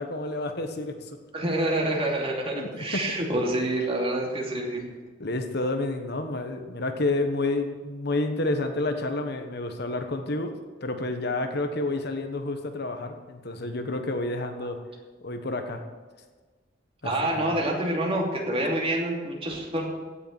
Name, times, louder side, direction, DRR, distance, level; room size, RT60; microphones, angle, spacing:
voice 1, 0.0-1.2 2.5-3.0 5.2-10.5 10.8-14.8 15.2-15.8 17.0-17.5, left 2 dB, 55° left, 6 dB, 1.3 m, -29 dB
voice 2, 1.3-4.9 17.0-19.9, right 1 dB, 30° right, 0 dB, 2.7 m, -27 dB
16.0 x 6.8 x 8.9 m, 1.4 s
head